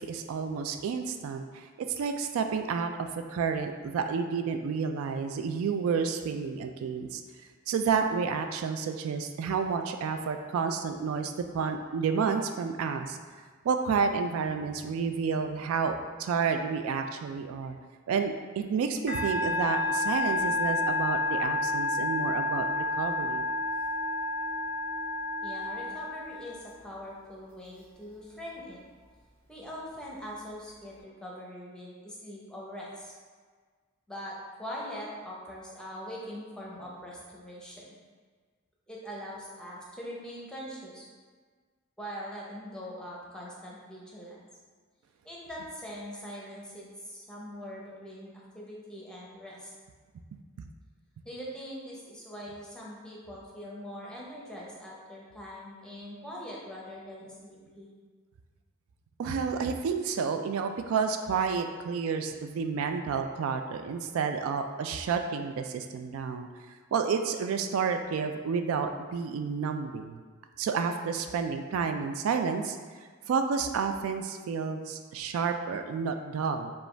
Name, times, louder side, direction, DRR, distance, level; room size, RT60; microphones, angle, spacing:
voice 1, 0.0-1.7 2.0-2.9 3.3-7.2 7.7-13.2 13.6-17.8 18.1-23.5 59.2-66.5 66.9-70.2 70.6-72.8 73.3-76.7, right 5 dB, 80° right, 6 dB, 0.3 m, -30 dB
Musical instrument, 19.1-26.7, left 2 dB, 50° right, 1.4 m, -30 dB
voice 2, 25.4-28.8 29.5-33.1 34.1-37.8 38.9-41.1 42.0-44.4 45.2-48.3 48.5-49.7 51.2-57.9, equal, 5° left, -5 dB, 0.7 m, -42 dB
5.0 x 2.4 x 3.3 m, 1.5 s
head